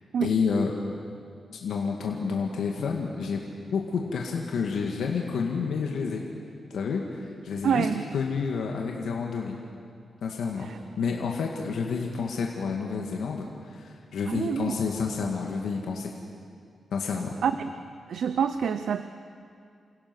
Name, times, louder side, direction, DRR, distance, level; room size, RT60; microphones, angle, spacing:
voice 1, 0.2-0.7 1.6-6.2 6.7-7.9 8.1-9.6 10.2-10.7 11.0-16.1 16.9-17.3, left 5 dB, 85° left, 0 dB, 1.8 m, -29 dB
voice 2, 7.6-8.0 10.6-10.8 14.3-14.8 17.4-17.5 18.1-19.0, right 7 dB, 80° right, 10 dB, 0.6 m, -26 dB
28.0 x 16.5 x 6.1 m, 2.2 s
cardioid pair, 90°, 0 cm